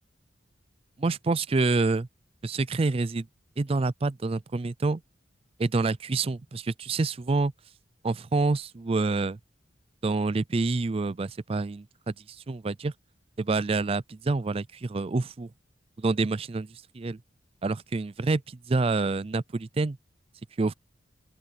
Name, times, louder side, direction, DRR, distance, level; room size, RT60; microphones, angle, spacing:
voice 1, 1.0-2.1 2.4-3.3 3.6-5.0 5.6-7.5 8.0-9.4 10.0-12.1 12.5-12.9 13.4-15.5 16.0-16.7 16.9-17.2 17.6-20.0 20.6-20.7, right 3 dB, 30° right, 0.4 m, -27 dB
open air
head